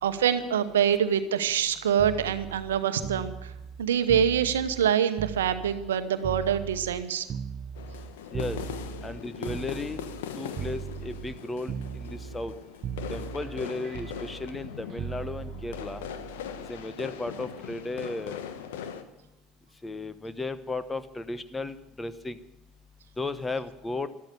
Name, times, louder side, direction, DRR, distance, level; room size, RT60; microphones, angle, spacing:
voice 1, 0.0-3.5 3.8-7.3, right 8 dB, 75° right, 11 dB, 1.0 m, -25 dB
sound 1, 2.0-5.9 6.2-10.3 10.6-11.4 11.7-12.6 12.8-16.8 18.0-18.3, right 7 dB, 45° right, 0.8 m, -38 dB
sound 2, 7.7-19.0, left 8 dB, 70° left, 1.2 m, -40 dB
voice 2, 9.0-10.0 10.4-12.5 13.1-16.0 16.7-18.4 19.8-22.4 23.2-24.1, left 2 dB, 15° left, 13 dB, 1.1 m, -35 dB
13.5 x 12.5 x 6.8 m, 0.93 s
figure-of-eight pair, 70°, 0 cm